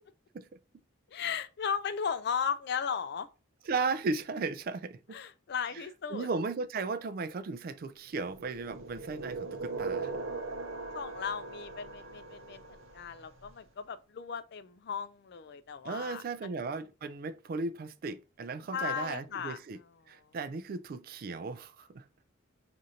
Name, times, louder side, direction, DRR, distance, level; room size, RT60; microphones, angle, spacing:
voice 1, 1.1-3.3 5.1-6.3 10.9-16.5 18.7-19.6 20.2-20.3, left 7 dB, 55° left, 0.4 m, -36 dB
voice 2, 3.7-5.2 6.1-10.1 15.8-19.8 20.1-22.1, right 4 dB, 50° right, 0.3 m, -36 dB
sound 1, 8.3-13.3, right 3 dB, 85° right, 0.8 m, -39 dB
6.3 x 2.5 x 2.8 m
head